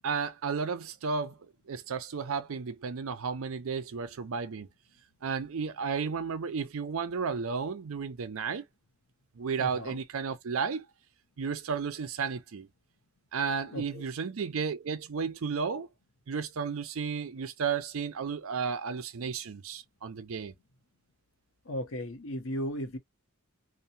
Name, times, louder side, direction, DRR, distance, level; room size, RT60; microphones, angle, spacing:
voice 1, 0.0-1.4 1.7-4.7 5.2-8.6 9.4-10.9 11.4-12.7 13.3-15.9 16.3-20.5, right 5 dB, 70° right, 0.5 m, -33 dB
voice 2, 9.6-10.0 13.7-14.0 21.6-23.0, equal, 65° left, 0.8 m, -36 dB
2.9 x 2.1 x 2.6 m
head